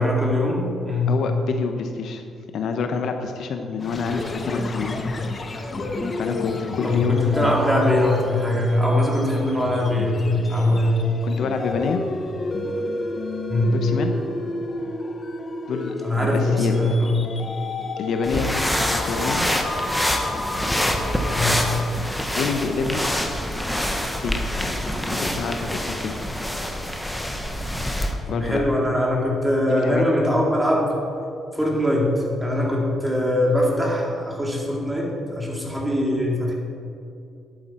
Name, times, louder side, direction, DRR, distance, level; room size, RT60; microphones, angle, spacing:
voice 1, 0.0-1.2 6.8-11.1 13.5-13.7 16.0-17.3 21.3-21.7 28.3-30.9 31.5-36.5, left 1 dB, 10° right, -2 dB, 2.4 m, -22 dB
voice 2, 1.1-2.2 2.5-4.9 6.2-7.6 11.2-12.0 13.7-14.1 15.7-16.7 18.0-18.5 18.9-19.4 22.4-23.0 24.2-24.4 25.2-26.1 28.3-28.6 29.7-30.0, left 5 dB, 70° left, 6 dB, 0.8 m, -27 dB
sound 1, 3.8-21.9, left 2 dB, 35° left, 0.9 m, -31 dB
sound 2, 18.2-28.1, equal, 5° left, 1.1 m, -26 dB
11.0 x 8.8 x 4.3 m, 2.5 s
cardioid pair, 90°, 0 cm